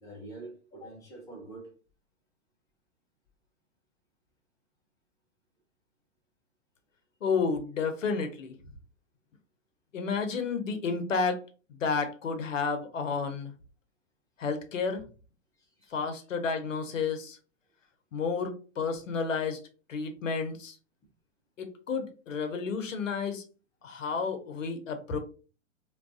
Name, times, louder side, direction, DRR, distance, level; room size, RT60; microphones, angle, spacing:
voice 1, 0.0-1.8 15.6-16.2, right 2 dB, 10° left, 0.4 m, -46 dB
voice 2, 7.2-8.5 9.9-11.4 11.8-13.5 14.4-15.0 15.9-17.4 18.1-19.6 19.9-20.7 21.6-23.4 23.8-25.2, left 5 dB, 80° left, 0.7 m, -31 dB
2.3 x 2.2 x 2.4 m
hypercardioid pair, 110°, 38 cm